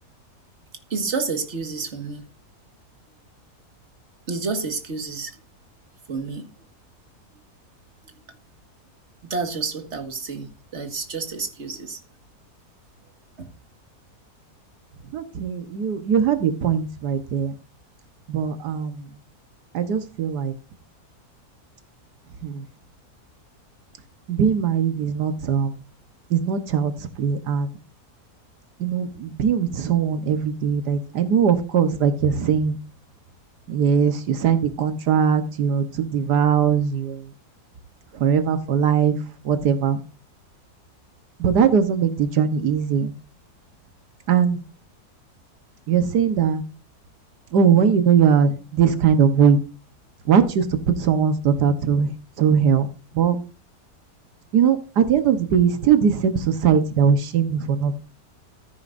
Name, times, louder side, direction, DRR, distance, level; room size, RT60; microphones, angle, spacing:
voice 1, 0.9-2.2 4.3-5.4 6.1-6.5 9.2-12.0 13.4-13.5, right 4 dB, 45° right, 1.9 m, -29 dB
voice 2, 15.1-17.5 18.3-19.1 19.7-20.5 22.4-22.6 24.3-25.8 26.3-27.7 28.8-32.8 33.7-37.3 38.1-39.2 39.4-40.0 41.4-43.1 44.3-44.6 45.9-46.6 47.5-49.6 50.3-52.1 52.4-52.9 53.1-53.4 54.5-58.0, right 7 dB, 85° right, 1.7 m, -20 dB
14.0 x 9.6 x 2.6 m
omnidirectional pair, 1.7 m